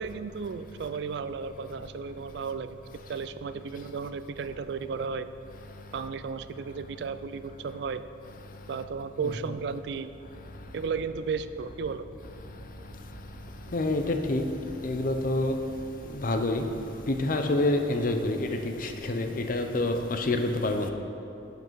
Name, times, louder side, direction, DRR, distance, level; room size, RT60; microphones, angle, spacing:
voice 1, 0.0-2.8 3.1-5.3 5.9-8.0 8.7-10.1 10.7-12.1, right 5 dB, 60° right, 12 dB, 0.3 m, -34 dB
sound 1, 10.2-17.3, right 1 dB, 25° right, 0.8 m, -48 dB
voice 2, 13.7-14.4 14.8-15.5 16.1-16.7 17.1-20.9, left 2 dB, 45° left, 6 dB, 0.6 m, -27 dB
12.0 x 5.2 x 4.6 m, 2.9 s
head